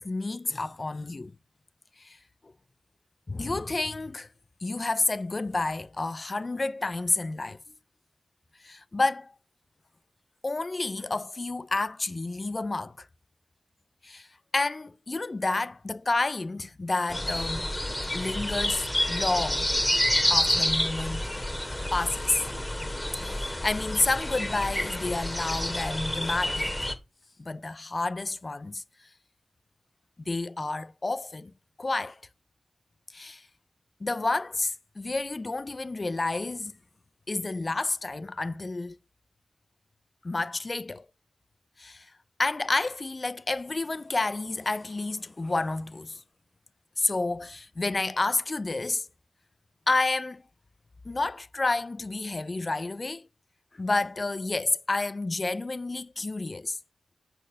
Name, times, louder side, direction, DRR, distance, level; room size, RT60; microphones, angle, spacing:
voice 1, 0.0-1.3 2.0-2.2 3.3-4.3 4.6-7.6 8.6-9.3 10.4-13.1 14.0-14.3 14.5-17.7 18.1-19.7 20.3-21.3 21.9-22.4 23.2-26.8 27.4-28.8 30.3-31.5 31.8-32.2 33.1-33.4 34.0-36.7 37.3-39.0 40.2-41.1 41.8-42.1 42.4-46.2 47.0-49.1 49.9-50.4 51.0-53.2 53.7-56.8, left 3 dB, 45° left, 0.7 m, -30 dB
sound 1, 17.1-26.9, left 1 dB, 15° left, 2.5 m, -29 dB
8.4 x 4.5 x 6.7 m
cardioid pair, 40°, 0 cm